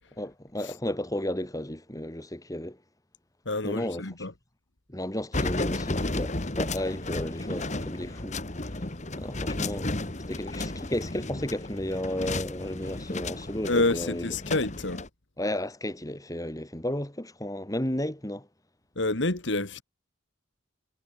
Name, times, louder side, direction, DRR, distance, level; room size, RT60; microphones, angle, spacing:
voice 1, 0.2-2.8 3.6-4.0 4.9-8.4 9.1-9.9 10.3-14.3 15.4-18.5, left 1 dB, 20° left, 2.7 m, -33 dB
voice 2, 3.5-4.3 13.7-15.0 19.0-19.8, left 2 dB, 65° left, 2.0 m, -28 dB
sound 1, 5.3-15.1, left 2 dB, 35° left, 1.9 m, -33 dB
head